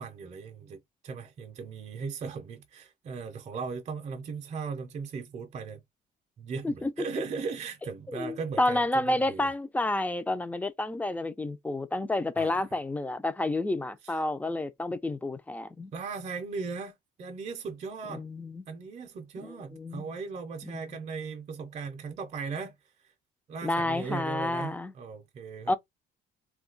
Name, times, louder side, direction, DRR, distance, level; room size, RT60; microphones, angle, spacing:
voice 1, 0.0-5.8 6.4-9.5 12.4-12.6 14.0-14.1 15.9-16.9 17.2-18.2 18.7-22.8 23.5-25.8, right 5 dB, 40° right, 0.6 m, -38 dB
voice 2, 8.1-15.9 18.1-18.7 19.4-20.1 20.6-20.7 23.6-24.9 25.7-25.8, left 2 dB, 10° left, 0.4 m, -30 dB
2.3 x 2.2 x 3.8 m
cardioid pair, 110°, 17 cm